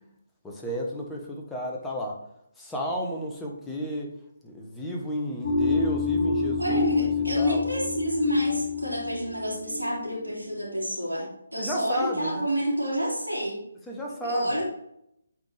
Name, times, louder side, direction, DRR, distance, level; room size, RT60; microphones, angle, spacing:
voice 1, 0.4-2.2 2.6-4.1 4.4-7.1 7.4-7.6 11.6-12.5 13.9-14.6, equal, 5° left, -2 dB, 0.9 m, -32 dB
sound 1, 5.4-10.5, left 4 dB, 35° left, 1.1 m, -28 dB
voice 2, 6.6-13.6 14.2-14.7, equal, 90° right, -3 dB, 2.6 m, -28 dB
8.0 x 4.3 x 3.2 m, 0.77 s
figure-of-eight pair, 145°, 0 cm